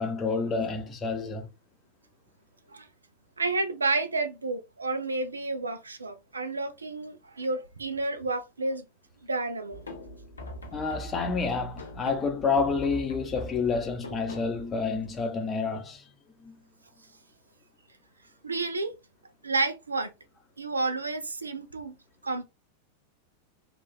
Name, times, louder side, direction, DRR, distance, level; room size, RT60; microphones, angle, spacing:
voice 1, 0.0-1.5 10.7-16.0 16.4-16.6, left 4 dB, 20° left, 0.7 m, -29 dB
voice 2, 3.4-8.8 9.2-9.8 18.4-19.0 19.4-20.1 20.6-21.9 22.2-22.4, right 3 dB, 75° right, 0.4 m, -30 dB
sound 1, 9.7-15.2, equal, 75° left, 0.6 m, -42 dB
3.2 x 2.3 x 2.3 m
figure-of-eight pair, 90°, 0 cm